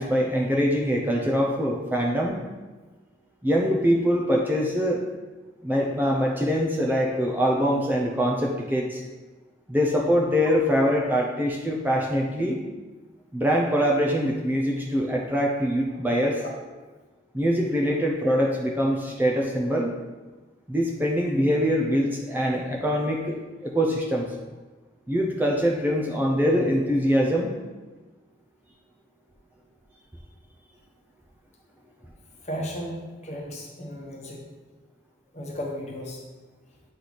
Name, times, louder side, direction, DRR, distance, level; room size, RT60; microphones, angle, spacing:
voice 1, 0.0-2.4 3.4-5.0 5.6-9.0 9.7-12.6 13.3-16.4 17.3-19.9 20.7-24.3 25.1-27.6, equal, 10° right, -1 dB, 0.5 m, -23 dB
voice 2, 32.4-34.5 35.3-36.2, equal, 35° left, -1 dB, 1.1 m, -35 dB
8.2 x 3.1 x 4.0 m, 1.2 s
head